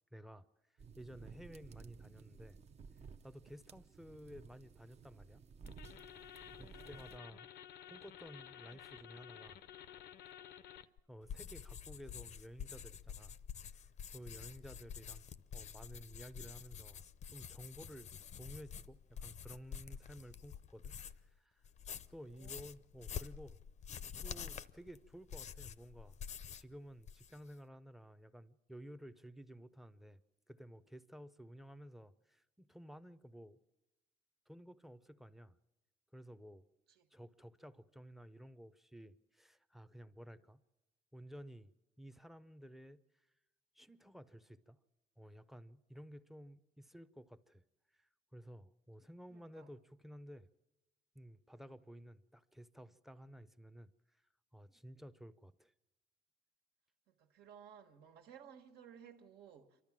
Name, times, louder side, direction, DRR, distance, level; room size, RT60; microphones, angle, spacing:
voice 1, 0.1-0.5 1.0-2.6 3.2-5.4 6.6-7.5 7.9-9.6 11.1-13.4 14.1-21.6 22.1-23.6 24.2-26.2 26.5-30.2 30.5-33.6 34.5-35.6 36.1-36.6 37.1-40.6 41.1-41.7 42.0-43.3 43.7-44.8 45.2-47.6 47.9-50.5 51.1-54.2 54.5-55.7, equal, ahead, 0.6 m, -54 dB
sound 1, 0.8-7.2, right 5 dB, 40° right, 0.7 m, -56 dB
sound 2, 5.7-11.0, left 10 dB, 75° left, 0.7 m, -53 dB
voice 2, 6.7-7.0 14.4-14.6 22.2-22.8 36.9-37.1 49.3-49.8 51.7-51.8 57.1-59.8, right 8 dB, 75° right, 1.6 m, -58 dB
sound 3, 11.2-21.3 21.6-26.7 27.0-27.5, left 8 dB, 45° left, 0.6 m, -48 dB
28.0 x 12.5 x 7.4 m
cardioid pair, 110°, 17 cm